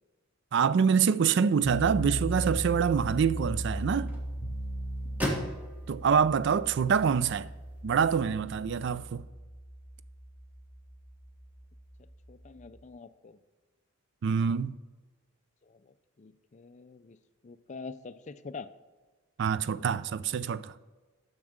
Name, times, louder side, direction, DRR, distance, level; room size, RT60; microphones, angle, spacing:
voice 1, 0.5-4.2 5.9-7.5 7.8-9.2 14.2-14.8 19.4-20.7, right 6 dB, 50° right, 0.3 m, -26 dB
sound 1, 1.6-12.8, right 1 dB, 10° left, 3.2 m, -38 dB
sound 2, 1.7-7.8, equal, 5° right, 1.2 m, -40 dB
voice 2, 12.0-13.4 15.6-17.2 17.4-18.7, left 4 dB, 30° left, 0.3 m, -46 dB
7.2 x 6.0 x 6.5 m
head